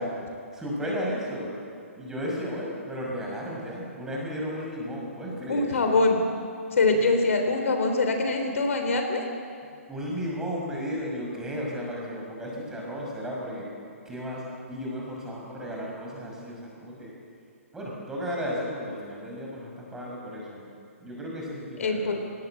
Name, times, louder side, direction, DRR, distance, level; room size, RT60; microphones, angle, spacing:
voice 1, 0.0-1.5 1.9-5.8 9.6-13.7 14.0-17.1 17.7-20.7 21.0-22.2, equal, 5° right, -3 dB, 5.9 m, -34 dB
voice 2, 5.5-6.2 6.8-9.2 21.8-22.2, left 3 dB, 70° left, 5 dB, 3.5 m, -23 dB
21.0 x 18.0 x 8.1 m, 2.4 s
hypercardioid pair, 145°, 8 cm